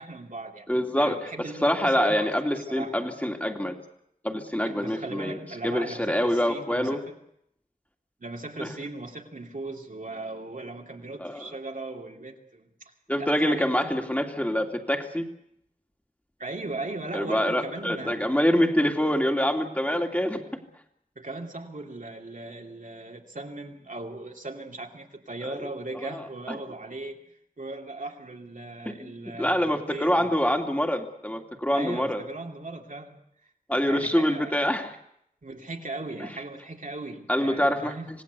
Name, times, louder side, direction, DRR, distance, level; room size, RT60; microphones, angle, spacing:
voice 1, 0.0-3.0 4.6-7.2 8.2-13.8 16.4-18.2 21.1-27.2 27.6-30.3 31.7-33.5 33.9-34.7 35.4-38.1, right 2 dB, 65° right, 2 dB, 3.0 m, -38 dB
voice 2, 0.7-1.2 1.6-3.7 4.2-7.0 8.6-8.7 11.2-11.5 13.1-15.2 17.1-20.4 25.4-25.6 25.9-26.6 28.9-29.1 29.4-32.2 33.7-35.0 37.3-38.0, equal, 10° left, 3 dB, 2.7 m, -25 dB
26.5 x 18.0 x 8.3 m, 0.76 s
wide cardioid pair, 65°, 14 cm